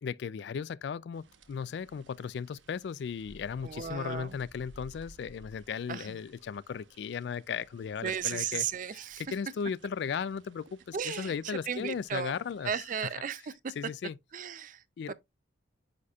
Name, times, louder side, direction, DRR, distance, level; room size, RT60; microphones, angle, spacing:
voice 1, 0.0-9.0 9.3-12.7 13.0-13.1 13.8-14.2 15.0-15.1, left 6 dB, 65° left, 0.3 m, -36 dB
sound 1, 1.1-12.9, right 1 dB, 90° right, 0.9 m, -58 dB
voice 2, 3.6-4.4 5.9-6.2 8.0-9.2 10.9-12.3 12.6-13.5 14.3-15.1, right 7 dB, 45° right, 0.4 m, -35 dB
9.6 x 4.2 x 2.3 m
head